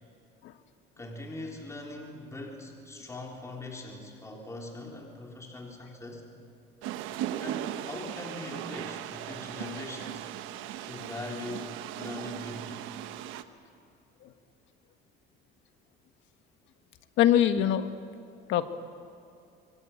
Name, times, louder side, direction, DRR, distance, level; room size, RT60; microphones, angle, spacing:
voice 1, 1.0-6.3 7.4-10.3 10.8-12.9, left 2 dB, 15° left, 0 dB, 3.9 m, -41 dB
sound 1, 6.8-13.4, right 12 dB, 85° right, 1.2 m, -38 dB
voice 2, 17.2-17.9 18.5-18.7, left 11 dB, 70° left, 9 dB, 1.5 m, -23 dB
26.0 x 24.5 x 8.8 m, 2.5 s
cardioid pair, 130°, 20 cm